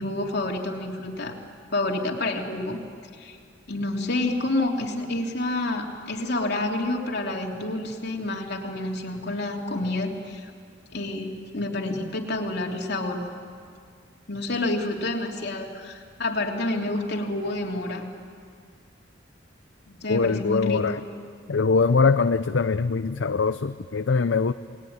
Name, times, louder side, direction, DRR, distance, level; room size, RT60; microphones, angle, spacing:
voice 1, 0.0-1.3 1.7-2.8 3.2-3.4 3.7-10.5 10.9-13.3 14.3-18.1 19.9-21.0, left 2 dB, 60° left, 0 dB, 3.2 m, -28 dB
voice 2, 20.1-21.0 21.5-24.5, left 4 dB, 75° left, 10 dB, 0.6 m, -22 dB
29.0 x 20.5 x 9.6 m, 2.1 s
head